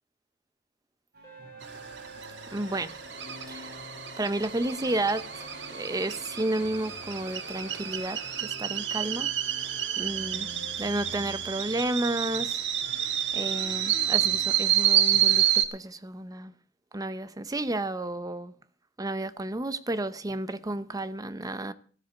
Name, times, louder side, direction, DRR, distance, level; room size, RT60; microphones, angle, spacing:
sound 1, 1.1-15.5, equal, 60° right, 3.7 m, -49 dB
sound 2, 1.2-8.4, equal, 20° left, 5.6 m, -48 dB
sound 3, 1.6-15.7, right 10 dB, 80° right, 1.4 m, -29 dB
voice 1, 2.5-3.0 3.5-3.8 4.2-9.3 10.0-10.5 10.8-12.6 13.3-16.5 16.9-18.5 19.0-21.7, right 2 dB, 20° right, 0.7 m, -32 dB
14.5 x 12.5 x 5.0 m
head